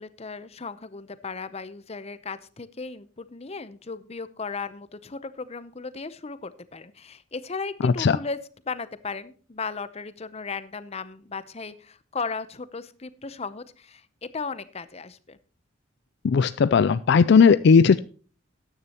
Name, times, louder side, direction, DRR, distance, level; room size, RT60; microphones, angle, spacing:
voice 1, 0.0-8.4 8.7-15.4, left 4 dB, 30° left, 14 dB, 0.7 m, -36 dB
voice 2, 7.8-8.2 16.2-18.0, left 5 dB, 60° left, 15 dB, 0.4 m, -17 dB
13.5 x 10.0 x 2.9 m, 0.40 s
head